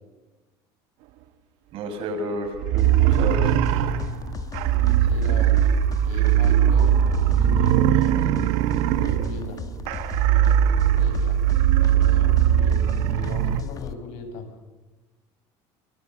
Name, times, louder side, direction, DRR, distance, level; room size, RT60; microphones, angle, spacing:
voice 1, 1.7-3.5, right 1 dB, 55° right, 6 dB, 6.5 m, -30 dB
sound 1, 2.6-13.6, right 10 dB, 75° right, 1.8 m, -20 dB
sound 2, 2.8-13.9, left 7 dB, 35° left, 1.7 m, -36 dB
voice 2, 5.0-5.7 6.0-8.2 8.9-9.6 10.7-11.4 11.9-14.5, left 4 dB, 80° left, 6 dB, 6.8 m, -38 dB
29.5 x 24.0 x 6.7 m, 1.2 s
cardioid pair, 130°, 11 cm